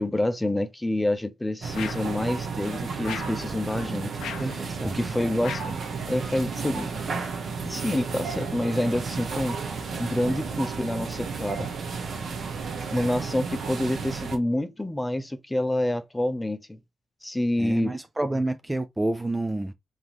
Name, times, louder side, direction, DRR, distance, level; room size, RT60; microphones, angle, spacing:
voice 1, 0.0-4.1 4.9-5.7 6.1-7.0 7.6-9.6 10.0-11.7 12.9-16.8 17.2-17.9, left 1 dB, 15° left, 0.7 m, -27 dB
sound 1, 1.6-14.4, right 5 dB, 65° right, 1.3 m, -33 dB
sound 2, 1.7-2.2 3.0-3.4 4.2-4.6 5.4-5.8, left 9 dB, 90° left, 0.5 m, -37 dB
voice 2, 4.4-5.0 17.6-19.7, right 2 dB, 15° right, 0.4 m, -29 dB
3.7 x 3.6 x 2.9 m
cardioid pair, 75°, 0 cm